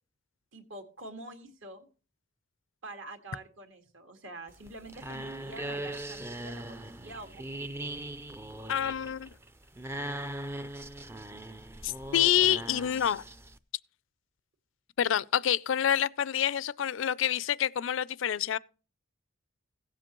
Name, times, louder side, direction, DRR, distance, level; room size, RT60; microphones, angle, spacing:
voice 1, 0.5-1.9 2.8-7.6, right 2 dB, 70° right, 2.0 m, -46 dB
sound 1, 4.5-13.6, right 1 dB, 10° right, 0.4 m, -40 dB
voice 2, 8.7-9.3 11.8-13.2 15.0-18.6, left 10 dB, 70° left, 0.4 m, -27 dB
16.5 x 7.6 x 3.0 m
head